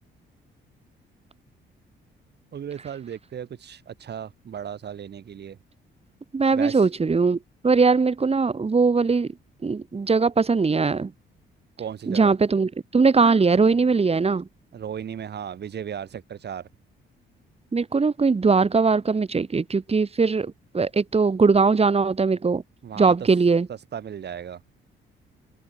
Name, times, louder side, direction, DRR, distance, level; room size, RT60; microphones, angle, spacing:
voice 1, 2.5-5.6 6.5-6.8 11.8-12.3 14.7-16.7 22.8-23.2 23.9-24.6, right 8 dB, 55° right, 6.8 m, -35 dB
voice 2, 6.3-9.3 9.6-11.1 12.1-14.5 17.7-22.6 23.0-23.7, right 4 dB, 30° right, 6.2 m, -20 dB
open air
cardioid pair, 90°, 20 cm